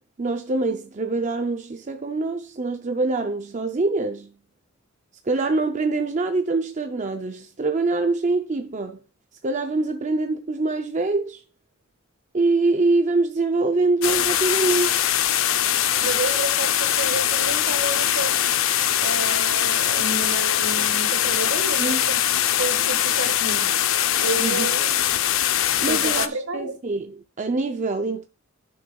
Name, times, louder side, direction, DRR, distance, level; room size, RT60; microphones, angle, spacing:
voice 1, 0.2-4.3 5.3-9.0 9.4-11.4 12.3-15.0 21.8-22.0 24.4-24.7 25.8-28.3, right 3 dB, 35° right, 0.5 m, -24 dB
sound 1, 14.0-26.3, left 11 dB, 70° left, 0.5 m, -22 dB
voice 2, 16.0-18.4 19.0-22.2 22.5-23.7 24.2-24.9 25.8-26.7, right 2 dB, 75° right, 1.5 m, -30 dB
11.5 x 6.5 x 2.3 m
head